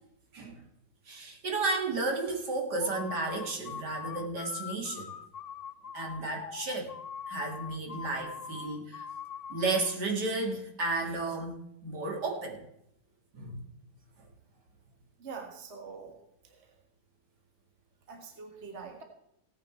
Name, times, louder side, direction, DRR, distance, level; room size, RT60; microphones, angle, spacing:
voice 1, 1.1-5.1 5.9-6.9 7.3-9.1 9.5-12.6 13.3-13.5, right 3 dB, 75° right, 1 dB, 2.7 m, -33 dB
sound 1, 2.7-10.0, left 7 dB, 85° left, 0.5 m, -42 dB
voice 2, 15.2-16.1 16.4-16.7 18.1-19.0, right 5 dB, 40° right, 3 dB, 1.8 m, -44 dB
17.0 x 9.1 x 4.4 m, 0.78 s
omnidirectional pair, 1.8 m